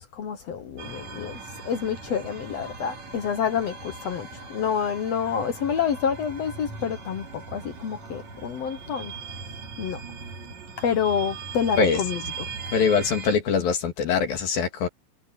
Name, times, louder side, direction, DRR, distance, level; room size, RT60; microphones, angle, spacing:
voice 1, 0.1-9.1 9.8-10.0 10.8-12.6, left 7 dB, 60° left, 1.8 m, -28 dB
sound 1, 0.8-13.4, right 4 dB, 50° right, 4.3 m, -39 dB
voice 2, 12.7-14.9, left 6 dB, 85° left, 4.6 m, -23 dB
omnidirectional pair, 4.0 m